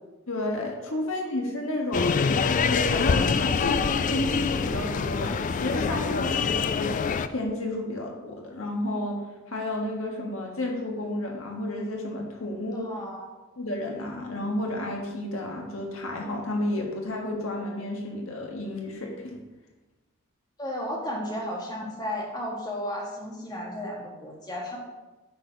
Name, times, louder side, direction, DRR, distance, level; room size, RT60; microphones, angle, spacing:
voice 1, 0.3-6.9 7.3-9.2 9.5-12.9 13.6-19.4, left 1 dB, 80° left, 0 dB, 1.6 m, -31 dB
sound 1, 1.9-7.3, left 5 dB, 40° left, 0.3 m, -25 dB
voice 2, 12.7-13.2 20.6-24.8, left 1 dB, 20° left, -2 dB, 1.7 m, -33 dB
8.7 x 4.4 x 5.1 m, 1.1 s
head